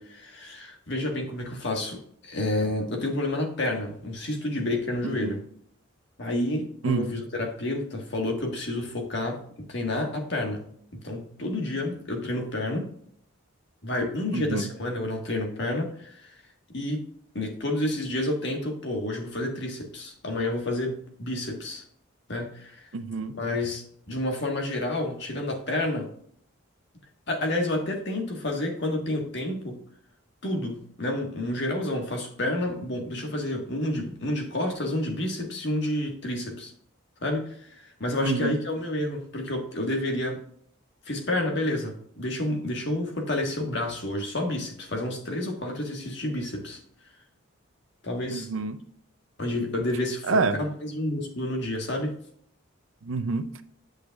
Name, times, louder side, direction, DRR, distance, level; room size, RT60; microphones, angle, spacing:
voice 1, 0.0-5.4 6.2-9.4 9.7-10.7 10.9-12.9 13.8-16.3 16.7-17.1 17.3-21.8 22.3-22.8 23.3-26.1 27.3-29.8 30.4-36.7 37.2-40.4 41.0-46.8 48.0-48.5 49.4-52.1, left 1 dB, 55° left, 2 dB, 1.6 m, -29 dB
voice 2, 5.0-5.4 6.8-7.1 14.3-14.7 22.9-23.4 38.2-38.6 48.3-48.8 50.2-50.6 53.0-53.5, right 3 dB, 70° right, 11 dB, 0.6 m, -27 dB
8.4 x 6.4 x 2.4 m, 0.64 s
head